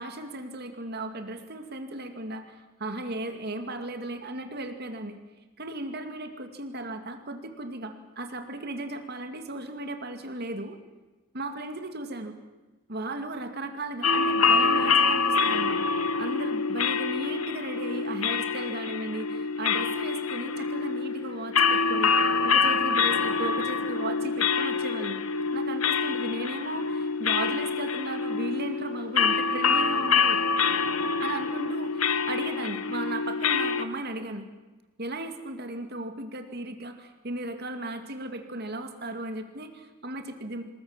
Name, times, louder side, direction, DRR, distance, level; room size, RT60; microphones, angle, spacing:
voice 1, 0.0-5.2 5.6-10.8 11.3-12.3 12.9-15.8 16.2-25.2 25.5-30.4 31.2-34.4 35.0-40.6, right 2 dB, 45° right, 7 dB, 2.4 m, -36 dB
sound 1, 14.0-33.8, left 5 dB, 80° left, 1.3 m, -26 dB
27.5 x 20.5 x 7.4 m, 1.2 s
head